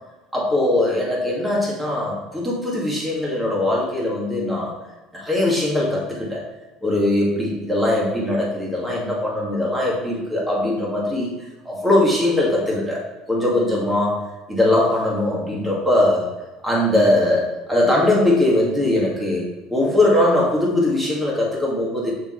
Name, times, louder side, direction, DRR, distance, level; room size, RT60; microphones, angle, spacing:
voice 1, 0.3-4.7 5.1-6.4 6.8-11.3 11.7-13.0 13.3-14.2 14.5-16.3 16.6-19.4 19.7-22.1, left 1 dB, 10° right, -4 dB, 2.2 m, -20 dB
7.1 x 6.5 x 3.3 m, 1.1 s
cardioid pair, 130°, 0 cm